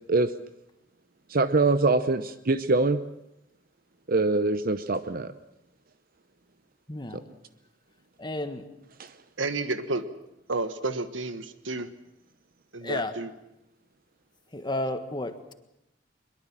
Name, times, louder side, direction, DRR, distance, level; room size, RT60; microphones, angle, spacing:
voice 1, 1.3-3.0 4.1-5.3 9.0-9.1, right 3 dB, 50° right, 12 dB, 0.8 m, -24 dB
voice 2, 6.9-7.2 8.2-8.7 12.8-13.1 14.5-15.5, left 1 dB, 25° left, 8 dB, 1.5 m, -32 dB
voice 3, 9.4-10.0 10.5-11.9 12.7-13.3, right 3 dB, 75° right, 10 dB, 1.5 m, -31 dB
22.5 x 22.5 x 7.5 m, 0.85 s
head